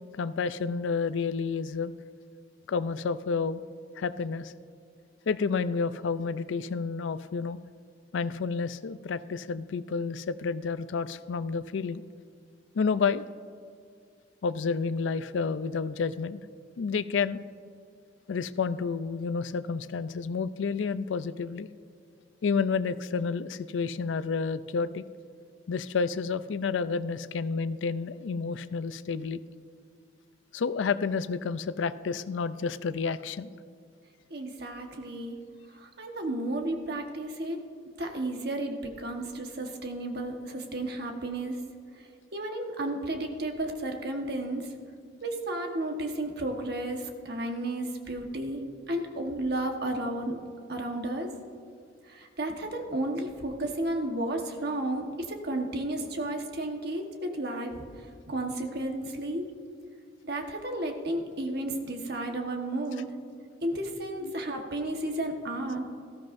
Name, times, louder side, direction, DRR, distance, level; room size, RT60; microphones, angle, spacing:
voice 1, 0.2-1.9 2.7-3.6 4.0-4.5 5.3-7.6 8.1-12.0 12.7-13.2 14.4-16.4 16.8-17.4 18.3-21.7 22.4-25.0 25.7-29.4 30.5-33.5 64.2-64.4, left 5 dB, 85° left, 14 dB, 0.4 m, -30 dB
voice 2, 34.3-35.4 35.7-37.6 38.0-41.6 42.0-44.7 45.2-48.6 48.9-50.4 50.7-51.3 52.1-59.5 60.2-63.1 63.6-65.8, right 1 dB, 60° right, 3 dB, 1.3 m, -33 dB
18.5 x 14.0 x 2.6 m, 2.3 s
head